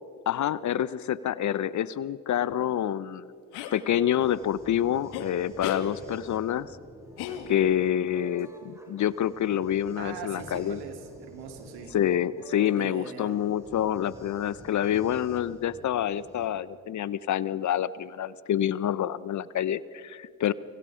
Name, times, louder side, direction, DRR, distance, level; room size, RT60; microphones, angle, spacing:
voice 1, 0.3-3.2 3.7-6.7 7.5-10.8 11.9-20.5, left 10 dB, 45° left, 18 dB, 0.9 m, -27 dB
sound 1, 3.5-3.8 5.1-5.3 5.6-5.9 7.2-7.8, left 9 dB, 75° left, 2.2 m, -35 dB
sound 2, 4.2-16.5, equal, 5° right, 6.3 m, -49 dB
voice 2, 10.0-11.9 12.7-13.4, right 6 dB, 70° right, 5 dB, 3.3 m, -41 dB
30.0 x 26.5 x 5.1 m, 2.3 s
hypercardioid pair, 60°, 40 cm